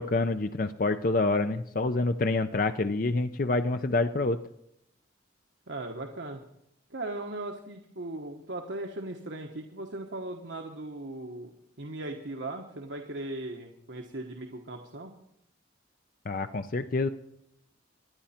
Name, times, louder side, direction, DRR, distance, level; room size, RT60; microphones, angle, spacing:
voice 1, 0.0-4.4 16.3-17.1, left 2 dB, 45° left, 9 dB, 0.5 m, -27 dB
voice 2, 5.7-6.4 6.9-11.5 11.8-15.1, right 2 dB, 75° right, 2 dB, 1.3 m, -38 dB
24.5 x 10.0 x 4.3 m, 0.77 s
head